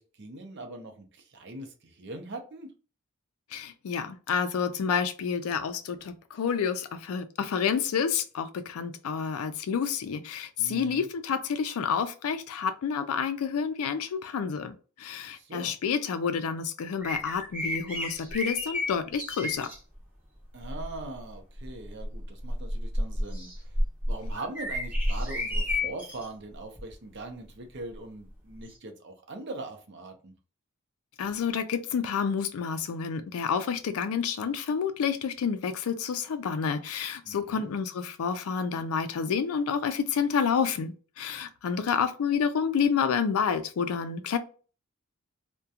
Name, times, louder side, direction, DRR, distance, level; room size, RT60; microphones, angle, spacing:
voice 1, 0.0-2.7 10.6-11.1 15.3-15.7 20.5-23.5 24.1-30.3 37.2-37.7, right 2 dB, 50° right, 0.6 m, -41 dB
voice 2, 3.5-19.7 31.2-44.4, left 6 dB, 75° left, 0.4 m, -29 dB
sound 1, 17.0-19.8 20.6-21.0 21.6-26.3 26.8-26.9 28.7-28.8, left 1 dB, 5° right, 0.6 m, -31 dB
2.4 x 2.2 x 2.7 m
head